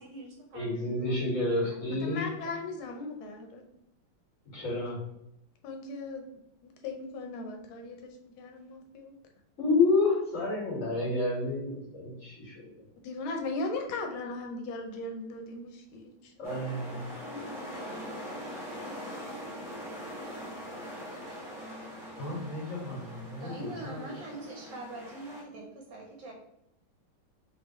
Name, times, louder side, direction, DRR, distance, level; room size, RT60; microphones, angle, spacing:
voice 1, 0.0-1.1 1.4-2.0 23.4-26.3, right 2 dB, 70° right, 1 dB, 1.2 m, -44 dB
voice 2, 0.5-2.3 4.5-5.0 9.6-12.6 16.4-17.0 22.2-24.3, left 3 dB, 40° left, -4 dB, 1.9 m, -30 dB
voice 3, 2.0-3.6 4.6-4.8 5.6-6.3 6.6-9.2 13.0-16.8 17.2-17.7, left 3 dB, 80° left, 3 dB, 1.5 m, -38 dB
sound 1, 16.4-25.4, equal, ahead, 0.6 m, -42 dB
3.7 x 3.3 x 3.0 m, 0.82 s
omnidirectional pair, 2.3 m